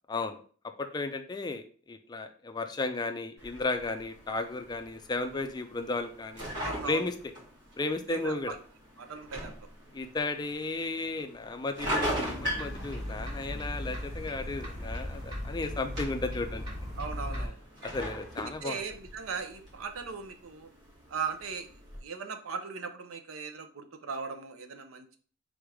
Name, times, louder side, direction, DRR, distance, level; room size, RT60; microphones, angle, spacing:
voice 1, 0.1-0.4 0.8-6.4 6.9-7.1 7.8-8.6 9.9-16.6 17.4-17.5 17.8-18.8, left 3 dB, 20° left, 7 dB, 0.4 m, -34 dB
sound 1, 3.4-22.0, equal, 60° right, 2.0 m, -41 dB
voice 2, 6.6-7.1 8.1-8.6 9.0-9.5 17.0-17.6 18.6-20.7 21.1-21.7 22.0-25.2, right 5 dB, 85° right, 7 dB, 0.6 m, -38 dB
sound 2, 12.2-17.5, left 1 dB, 25° right, 1.7 m, -37 dB
3.9 x 3.3 x 3.4 m, 0.43 s
head